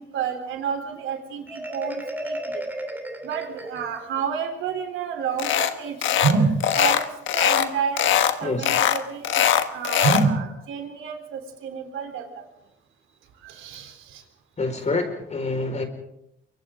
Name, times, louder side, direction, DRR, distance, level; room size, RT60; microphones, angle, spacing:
voice 1, 0.0-2.6 3.2-7.1 7.3-12.4 13.4-14.2, right 5 dB, 85° right, 5 dB, 3.7 m, -28 dB
Marimba xylophone, 1.5-4.2, right 1 dB, 10° right, 2.8 m, -34 dB
sound 1, 5.4-5.7 6.0-6.4 6.6-7.7 8.0-8.3 8.6-10.3, left 10 dB, 75° left, 1.4 m, -21 dB
voice 2, 8.4-8.7 14.6-15.8, left 3 dB, 35° left, 5 dB, 5.0 m, -27 dB
28.5 x 24.0 x 3.8 m, 0.81 s
cardioid pair, 90°, 20 cm